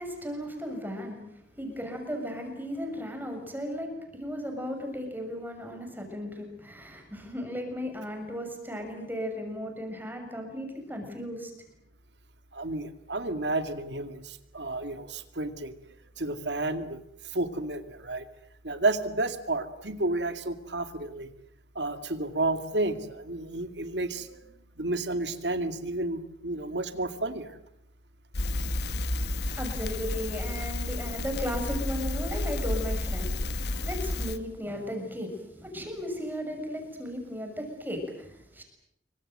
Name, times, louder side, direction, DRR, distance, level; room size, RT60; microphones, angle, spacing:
voice 1, 0.0-11.5 29.5-38.6, equal, 10° right, 3 dB, 6.6 m, -36 dB
voice 2, 12.5-15.7 16.2-17.0 17.3-18.3 18.6-21.3 21.8-24.4 24.8-27.5, right 2 dB, 80° right, 8 dB, 2.4 m, -31 dB
Crackle, 28.3-34.4, left 2 dB, 70° left, 1.5 m, -31 dB
27.5 x 24.5 x 7.9 m, 0.79 s
head